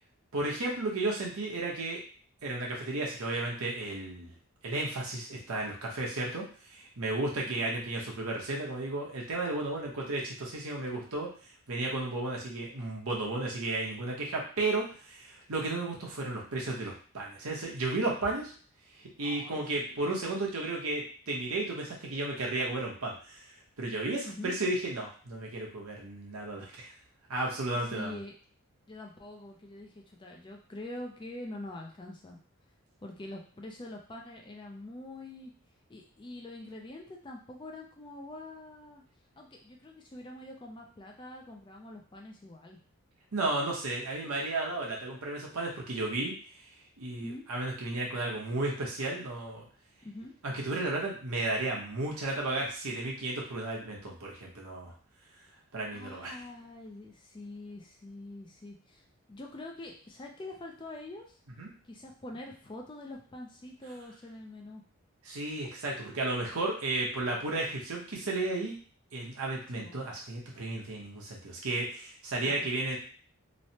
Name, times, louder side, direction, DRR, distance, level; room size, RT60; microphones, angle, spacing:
voice 1, 0.3-2.0 2.4-4.3 4.6-11.3 11.7-18.5 19.0-23.4 23.8-26.9 27.3-28.2 43.3-46.3 47.0-49.7 50.4-54.9 55.7-56.4 61.6-61.7 65.2-68.8 69.1-73.0, right 2 dB, 80° right, -2 dB, 0.8 m, -33 dB
voice 2, 19.2-20.3 24.3-24.6 27.8-28.3 28.9-32.4 33.0-35.5 35.9-39.0 39.4-42.8 47.2-47.4 50.0-50.3 55.9-61.4 61.8-64.8 69.7-70.0 72.5-72.7, left 2 dB, 20° left, 1 dB, 0.3 m, -45 dB
3.1 x 2.0 x 2.7 m, 0.42 s
head